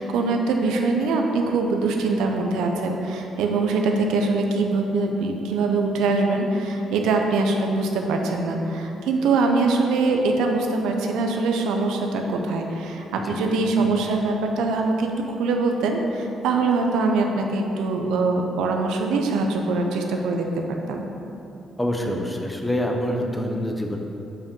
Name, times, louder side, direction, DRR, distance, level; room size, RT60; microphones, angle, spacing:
voice 1, 0.0-21.1, right 3 dB, 90° right, 2 dB, 0.8 m, -23 dB
voice 2, 21.8-24.0, equal, 10° left, 2 dB, 0.9 m, -26 dB
7.4 x 5.4 x 5.4 m, 2.9 s
cardioid pair, 90°, 0 cm